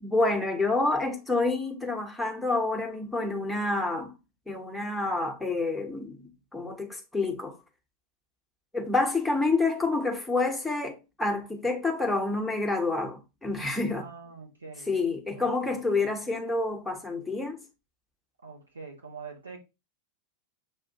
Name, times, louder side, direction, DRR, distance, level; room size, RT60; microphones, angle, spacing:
voice 1, 0.0-4.1 4.5-7.6 8.7-14.1 14.9-17.6, left 3 dB, 5° left, 0.9 m, -28 dB
voice 2, 13.9-14.9 15.4-15.8 18.4-19.6, right 5 dB, 75° right, 1.3 m, -44 dB
6.1 x 2.5 x 2.7 m
figure-of-eight pair, 90°, 0 cm